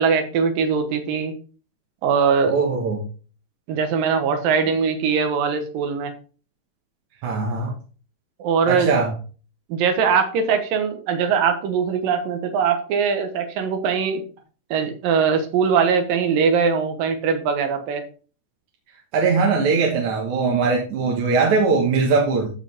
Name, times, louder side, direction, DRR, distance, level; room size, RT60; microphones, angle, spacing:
voice 1, 0.0-1.3 2.0-2.6 3.7-6.1 8.4-8.9 9.7-14.2 14.7-18.0, right 6 dB, 85° right, 7 dB, 2.9 m, -21 dB
voice 2, 2.5-3.0 7.2-7.7 8.7-9.1 19.1-22.5, right 4 dB, 65° right, -1 dB, 2.8 m, -20 dB
14.5 x 5.1 x 3.5 m, 0.38 s
omnidirectional pair, 3.9 m